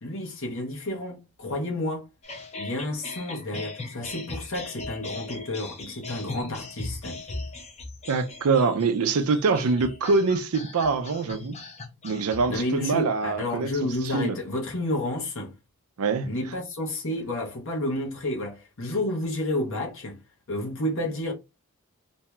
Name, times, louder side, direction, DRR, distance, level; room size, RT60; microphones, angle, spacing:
voice 1, 0.0-2.1 2.6-7.2 12.5-15.5 16.2-20.2 20.5-21.3, left 1 dB, 60° left, 0.9 m, -30 dB
sound 1, 2.2-12.6, left 3 dB, 30° left, 0.6 m, -39 dB
voice 2, 8.1-11.6 12.0-13.7 14.1-14.4 16.0-16.3, right 4 dB, 75° right, 0.4 m, -24 dB
2.6 x 2.3 x 3.0 m
head